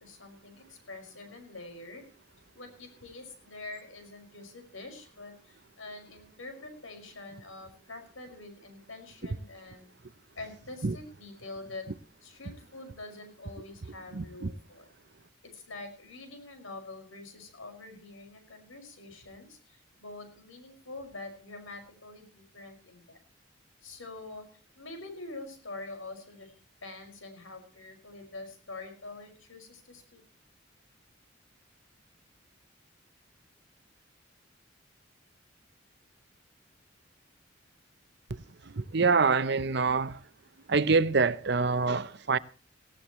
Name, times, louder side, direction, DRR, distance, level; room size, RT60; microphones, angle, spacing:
voice 1, 0.0-2.0 2.3-9.9 10.3-11.9 12.2-14.9 15.4-23.2 23.8-24.5 24.8-30.2, left 2 dB, 85° left, 5.7 m, -45 dB
voice 2, 14.1-14.5 38.7-40.2 40.7-42.4, right 4 dB, 55° right, 0.7 m, -25 dB
18.5 x 17.0 x 3.1 m
head